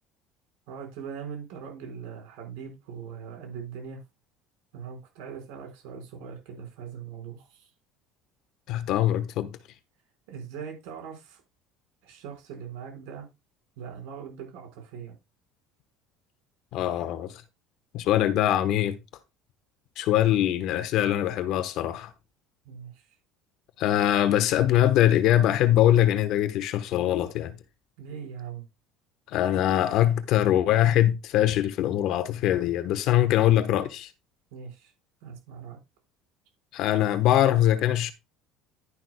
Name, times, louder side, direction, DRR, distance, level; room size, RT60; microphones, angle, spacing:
voice 1, 0.7-4.0 4.7-7.7 10.3-11.4 12.0-13.3 13.8-15.1 22.6-23.1 28.0-28.6 34.5-34.9 35.2-35.8, right 7 dB, 80° right, 4.7 m, -41 dB
voice 2, 8.7-9.6 16.7-17.4 17.9-19.0 20.0-22.1 23.8-27.6 29.3-34.1 36.7-38.1, left 12 dB, 55° left, 1.1 m, -23 dB
11.0 x 10.5 x 2.2 m
cardioid pair, 155°, 0 cm